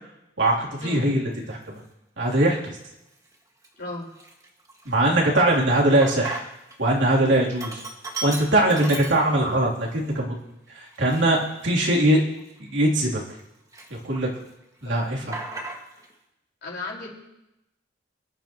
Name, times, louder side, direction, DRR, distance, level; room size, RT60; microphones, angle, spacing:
voice 1, 0.4-1.8 2.2-2.6 4.8-6.4 6.8-7.8 8.2-10.3 10.7-12.2 12.6-13.2 13.9-14.3 14.8-15.4, right 1 dB, 70° right, -3 dB, 3.2 m, -21 dB
Sink (filling or washing), 1.5-1.7 2.3-2.9 3.3-3.4 3.6-6.8 7.1-9.6 10.1-10.2 10.9-13.4 13.7-14.5 14.8-16.1, right 2 dB, 20° right, 1.8 m, -38 dB
voice 2, 16.6-17.1, left 3 dB, 60° left, -3 dB, 4.7 m, -34 dB
28.0 x 11.5 x 3.0 m, 0.90 s
head